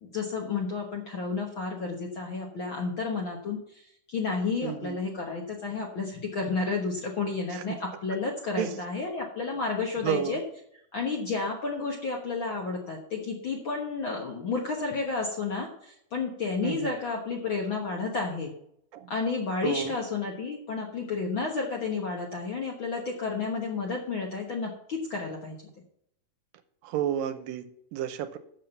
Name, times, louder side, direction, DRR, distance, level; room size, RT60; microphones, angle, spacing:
voice 1, 0.0-10.4 10.9-18.5 19.1-25.6, left 4 dB, 55° left, 0 dB, 1.4 m, -31 dB
voice 2, 4.6-5.0 8.6-8.8 10.0-10.4 16.6-17.0 18.9-19.1 19.6-19.9 26.8-28.4, right 10 dB, 85° right, 10 dB, 2.4 m, -31 dB
7.5 x 7.3 x 6.7 m, 0.70 s
omnidirectional pair, 4.0 m